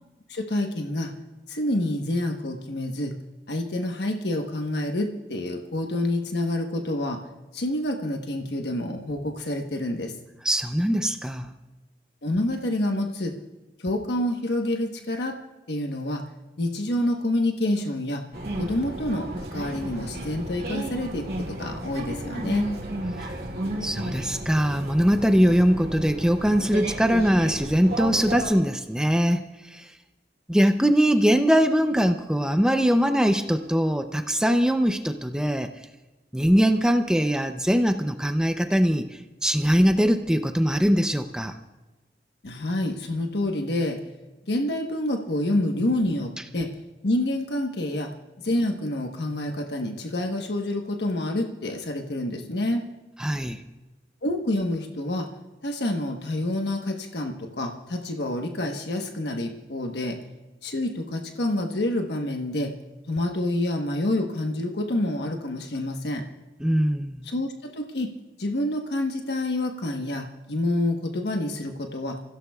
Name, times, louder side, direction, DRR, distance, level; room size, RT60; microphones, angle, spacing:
voice 1, 0.3-1.1 1.5-3.2 3.5-7.2 7.5-10.2 12.2-13.3 13.8-15.4 15.7-16.3 16.6-18.3 18.6-22.7 42.4-44.0 44.5-46.7 47.0-52.9 54.2-55.3 55.6-60.2 60.6-62.8 63.1-66.3 67.2-68.1 68.4-72.2, left 1 dB, 80° left, 3 dB, 1.2 m, -28 dB
voice 2, 10.4-11.5 23.8-29.9 30.5-35.7 36.3-41.6 53.2-53.6 66.6-67.3, equal, 5° right, 7 dB, 0.5 m, -22 dB
sound 1, 18.3-28.5, right 1 dB, 60° right, 2.5 m, -33 dB
29.5 x 16.0 x 2.4 m, 1.1 s
head